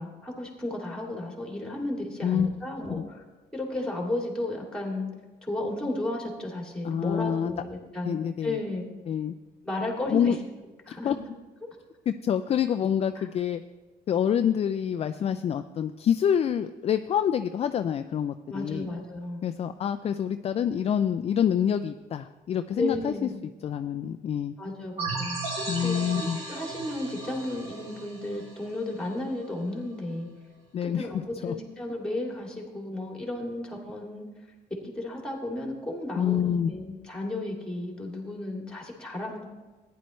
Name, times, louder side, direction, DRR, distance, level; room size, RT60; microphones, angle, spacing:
voice 1, 0.0-3.2 3.5-5.1 5.4-8.9 9.6-10.3 10.9-11.1 13.2-13.3 18.5-19.4 22.8-23.4 24.6-25.4 25.8-30.3 30.8-34.3 34.8-39.5, left 1 dB, 5° left, 0 dB, 2.6 m, -33 dB
voice 2, 2.2-2.5 3.0-3.1 6.8-7.5 8.1-8.6 9.1-9.3 10.1-10.4 10.9-11.2 12.1-13.6 14.1-18.9 19.4-23.3 23.6-24.6 25.7-26.4 30.7-31.5 36.2-36.7, left 8 dB, 35° left, 9 dB, 0.4 m, -27 dB
sound 1, 25.0-29.4, right 3 dB, 35° right, 3.4 m, -36 dB
14.5 x 10.5 x 3.2 m, 1.2 s
cardioid pair, 110°, 17 cm